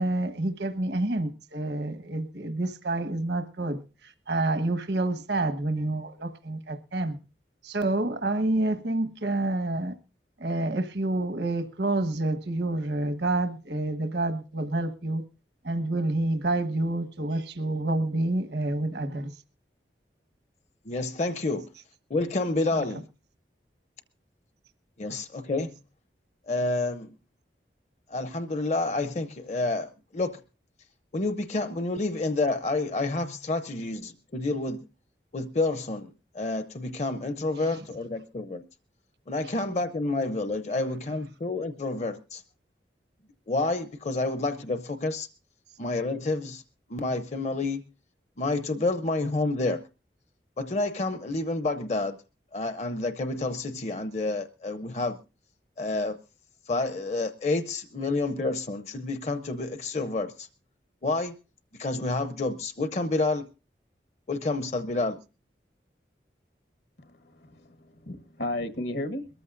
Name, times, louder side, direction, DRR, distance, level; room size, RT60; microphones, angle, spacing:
voice 1, 0.0-7.2 7.6-9.9 10.4-15.2 15.6-19.3 22.7-22.8 39.4-39.5, right 2 dB, 80° right, 1.3 m, -28 dB
voice 2, 20.9-21.7 22.1-23.0 25.0-25.7 26.5-27.1 28.1-30.4 31.1-34.8 35.3-36.1 36.3-38.6 39.3-42.4 43.5-45.3 45.8-46.6 46.9-47.8 48.4-49.8 50.6-52.2 52.5-55.2 55.8-56.2 56.7-60.5 61.0-61.3 61.8-63.5 64.3-65.2, left 2 dB, 40° left, 0.6 m, -29 dB
voice 3, 67.0-69.3, left 1 dB, 75° left, 1.2 m, -34 dB
22.5 x 14.0 x 2.5 m
head